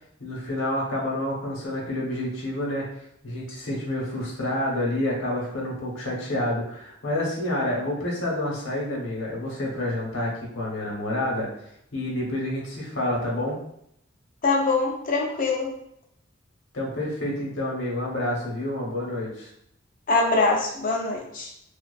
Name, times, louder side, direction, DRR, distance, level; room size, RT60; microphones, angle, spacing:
voice 1, 0.2-2.9 3.2-11.5 11.9-13.6 16.7-19.5, left 1 dB, 85° left, -3 dB, 0.9 m, -28 dB
voice 2, 14.4-15.7 20.1-21.5, left 3 dB, 45° left, -1 dB, 0.5 m, -23 dB
2.4 x 2.3 x 2.3 m, 0.72 s
head